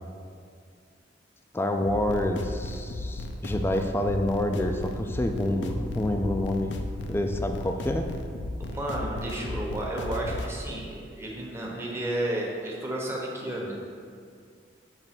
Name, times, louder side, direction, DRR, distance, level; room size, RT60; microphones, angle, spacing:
voice 1, 1.5-6.8 7.1-8.1, left 1 dB, 15° left, 5 dB, 0.4 m, -27 dB
sound 1, 1.8-10.5, left 2 dB, 70° left, 0.5 m, -35 dB
voice 2, 8.6-13.7, right 1 dB, 15° right, -3 dB, 1.0 m, -32 dB
7.4 x 3.3 x 5.9 m, 2.2 s
head